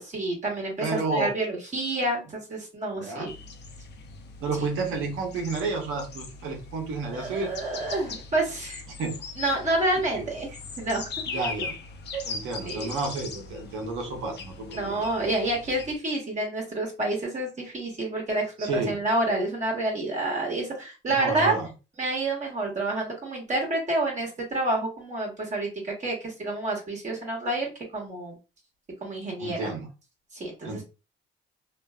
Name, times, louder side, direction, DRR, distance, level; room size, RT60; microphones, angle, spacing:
voice 1, 0.0-3.3 7.1-8.8 9.4-11.1 12.1-12.2 12.6-12.9 14.7-21.5 22.0-28.4 29.0-29.7 30.3-30.8, right 2 dB, 35° right, -2 dB, 1.2 m, -28 dB
voice 2, 0.8-1.3 2.9-3.3 4.4-7.5 8.9-9.2 10.1-10.2 11.3-11.8 12.2-15.1 18.6-19.0 21.1-21.7 29.4-29.9 30.6-30.8, right 3 dB, 85° right, 2 dB, 0.9 m, -31 dB
sound 1, 3.3-16.0, left 4 dB, 60° left, 0.6 m, -40 dB
2.6 x 2.3 x 2.2 m, 0.30 s
cardioid pair, 90°, 20 cm